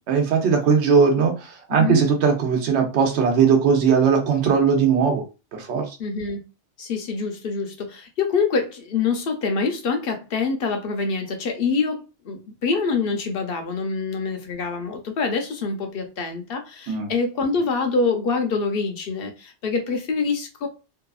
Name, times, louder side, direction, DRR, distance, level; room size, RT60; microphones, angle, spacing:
voice 1, 0.1-5.2 5.5-6.0 16.9-17.1, right 6 dB, 75° right, 0.9 m, -19 dB
voice 2, 1.7-2.0 6.0-6.4 6.8-12.0 12.2-20.7, left 4 dB, 60° left, 0.8 m, -25 dB
2.7 x 2.3 x 2.3 m
omnidirectional pair, 1.2 m